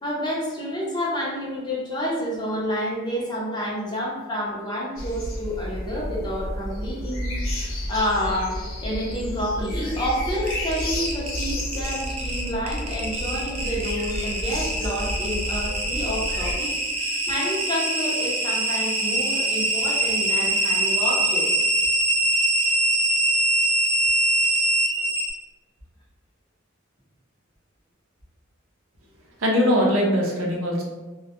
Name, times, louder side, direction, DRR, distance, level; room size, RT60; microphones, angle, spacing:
voice 1, 0.0-21.6, equal, 20° left, -5 dB, 0.6 m, -29 dB
sound 1, 5.0-16.6, left 1 dB, 75° left, 0.8 m, -31 dB
sound 2, 10.4-25.3, right 1 dB, 30° right, 0.4 m, -23 dB
voice 2, 29.4-30.8, equal, 80° right, -1 dB, 0.6 m, -21 dB
2.2 x 2.1 x 2.8 m, 1.2 s
head